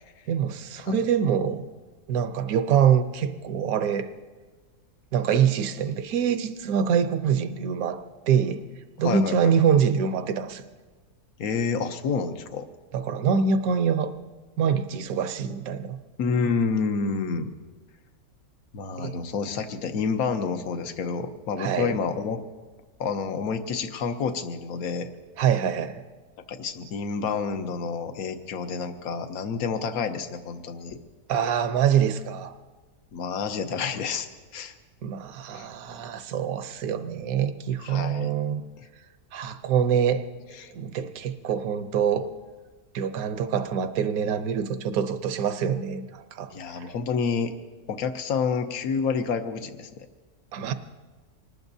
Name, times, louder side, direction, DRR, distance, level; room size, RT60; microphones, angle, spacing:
voice 1, 0.3-1.7 2.1-4.1 5.1-8.6 9.0-10.6 12.9-14.1 14.6-16.0 19.0-19.1 21.6-22.0 25.4-26.0 31.3-32.5 35.0-38.6 39.3-40.2 40.7-42.3 42.9-46.9 50.5-50.7, right 7 dB, 75° right, 9 dB, 1.3 m, -25 dB
voice 2, 9.0-9.6 11.4-12.7 16.2-17.5 18.7-22.4 23.0-25.1 26.5-31.0 33.1-34.3 34.5-34.7 35.5-35.7 37.8-38.3 40.5-40.7 46.5-47.5 47.9-50.1, left 5 dB, 75° left, 7 dB, 1.4 m, -29 dB
25.5 x 20.0 x 2.7 m, 1.4 s
omnidirectional pair, 1.6 m